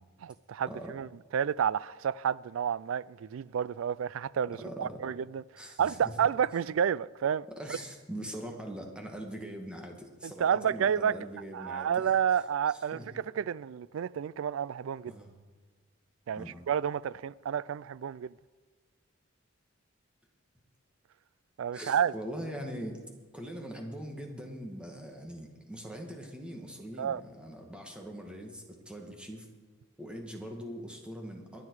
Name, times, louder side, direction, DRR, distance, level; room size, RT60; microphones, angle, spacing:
voice 1, 0.2-1.1 1.3-5.4 5.8-7.5 10.2-11.2 11.5-13.0 13.4-15.1 16.3-18.3 21.6-22.1 27.0-27.2, right 8 dB, 75° right, 0.3 m, -30 dB
voice 2, 4.6-5.0 5.6-6.1 7.6-12.1 12.7-13.1 15.1-15.3 16.4-16.6 21.7-23.0 23.3-29.5 30.0-31.7, equal, 5° right, 1.9 m, -42 dB
22.5 x 9.3 x 4.8 m
head